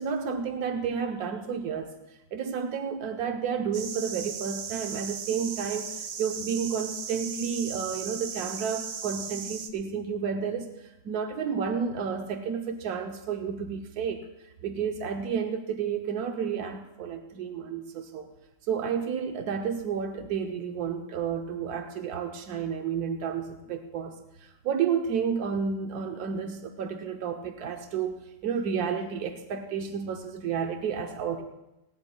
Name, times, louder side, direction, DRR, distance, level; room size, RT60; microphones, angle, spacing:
voice 1, 0.0-1.9 2.3-14.2 14.6-18.3 18.7-31.4, right 6 dB, 90° right, 5 dB, 1.3 m, -31 dB
sound 1, 3.7-9.7, right 7 dB, 70° right, 1.3 m, -37 dB
19.0 x 17.5 x 2.2 m, 0.93 s
omnidirectional pair, 1.6 m